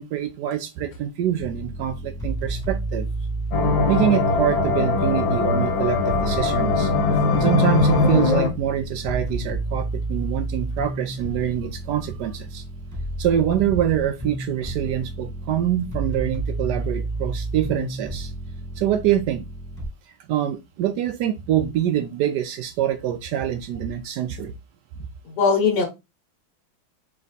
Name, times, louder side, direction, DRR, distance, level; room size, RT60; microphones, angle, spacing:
voice 1, 0.0-3.1 3.9-6.9 7.3-12.6 13.2-18.3 18.8-19.4 20.3-24.5, right 11 dB, 75° right, 1.0 m, -25 dB
sound 1, 1.4-19.9, right 2 dB, 10° right, 2.2 m, -31 dB
sound 2, 3.5-8.5, left 3 dB, 70° left, 1.6 m, -20 dB
voice 2, 25.3-25.8, left 5 dB, 55° left, 1.6 m, -20 dB
3.4 x 3.2 x 4.0 m
omnidirectional pair, 2.2 m